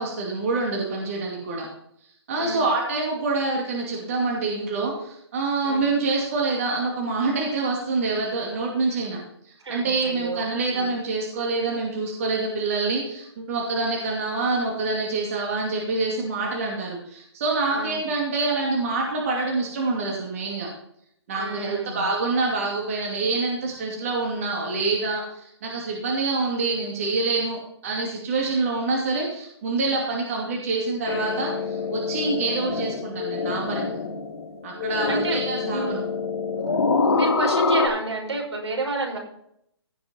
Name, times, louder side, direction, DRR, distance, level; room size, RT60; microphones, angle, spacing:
voice 1, 0.0-1.7 2.3-9.2 9.7-20.7 21.3-34.0 34.6-36.0, right 3 dB, 30° right, -2 dB, 2.5 m, -26 dB
voice 2, 9.6-10.5 10.7-10.9 17.7-18.0 21.4-22.1 35.1-35.4 35.7-36.0 37.1-39.2, right 2 dB, 85° right, 1 dB, 5.9 m, -29 dB
sound 1, 31.0-37.9, left 4 dB, 65° left, 3.5 m, -26 dB
16.0 x 6.8 x 4.5 m, 0.72 s
hypercardioid pair, 170°, 14 cm